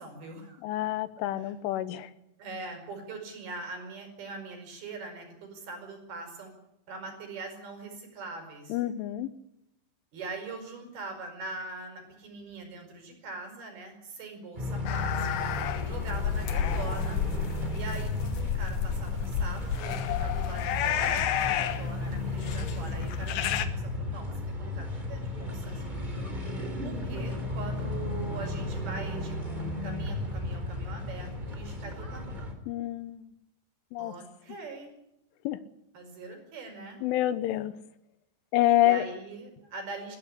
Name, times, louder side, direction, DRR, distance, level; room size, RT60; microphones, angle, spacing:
voice 1, 0.0-0.6 2.4-6.5 6.9-8.8 10.1-15.5 15.9-17.3 17.7-25.8 26.8-32.5 34.0-34.9 35.9-37.0 38.8-40.2, right 3 dB, 55° right, 5 dB, 6.7 m, -42 dB
voice 2, 0.6-2.1 8.7-9.3 26.8-27.0 32.7-33.3 33.9-34.1 35.5-35.6 37.0-37.7 38.5-39.0, left 14 dB, 85° left, 14 dB, 3.6 m, -27 dB
sound 1, 14.6-32.5, left 2 dB, 10° right, 3.0 m, -34 dB
sound 2, 14.9-23.7, left 9 dB, 65° left, 2.6 m, -31 dB
21.0 x 14.5 x 10.0 m, 0.83 s
omnidirectional pair, 5.5 m